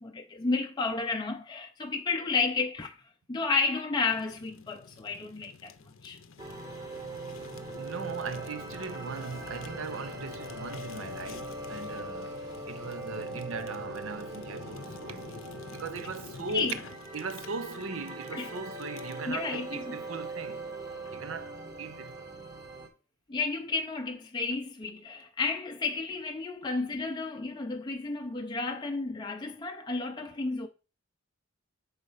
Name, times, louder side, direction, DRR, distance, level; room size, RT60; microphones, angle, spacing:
voice 1, 0.0-3.0 3.3-5.7 6.0-6.2 16.5-16.8 18.3-18.5 19.3-20.0 23.3-30.7, left 4 dB, 20° left, 0.5 m, -32 dB
Fire, 4.1-19.3, left 5 dB, 75° left, 0.6 m, -49 dB
sound 1, 6.4-22.9, right 2 dB, 20° right, 1.0 m, -41 dB
voice 2, 7.8-16.8 17.1-20.6 21.1-22.3, right 4 dB, 75° right, 0.6 m, -39 dB
6.5 x 4.0 x 5.4 m
head